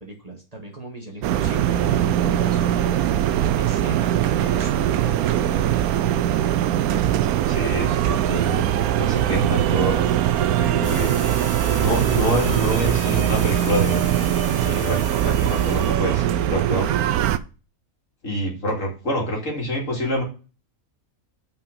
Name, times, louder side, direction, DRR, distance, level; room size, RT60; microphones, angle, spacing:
voice 1, 0.0-3.1 3.5-5.9, right 2 dB, 25° right, 0 dB, 1.5 m, -37 dB
sound 1, 1.2-17.4, right 11 dB, 80° right, 1.0 m, -21 dB
voice 2, 7.5-10.1 10.4-11.3 11.8-14.1 14.6-16.9 18.2-20.2, equal, 60° left, -1 dB, 2.7 m, -27 dB
sound 2, 10.8-16.0, left 2 dB, 15° left, 1.0 m, -37 dB
5.7 x 5.2 x 6.8 m, 0.35 s
omnidirectional pair, 1.5 m